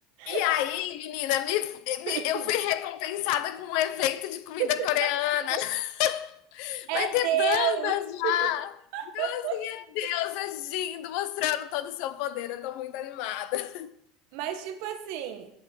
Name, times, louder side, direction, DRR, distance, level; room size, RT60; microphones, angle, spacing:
voice 1, 0.3-8.7 9.1-13.9, left 13 dB, 55° left, 0.5 m, -29 dB
voice 2, 2.1-2.5 4.6-4.7 5.0-5.1 6.9-8.0 8.2-8.5 8.9-9.6 14.3-15.5, right 11 dB, 55° right, 1.1 m, -30 dB
7.1 x 5.8 x 6.0 m
cardioid pair, 175°, 0 cm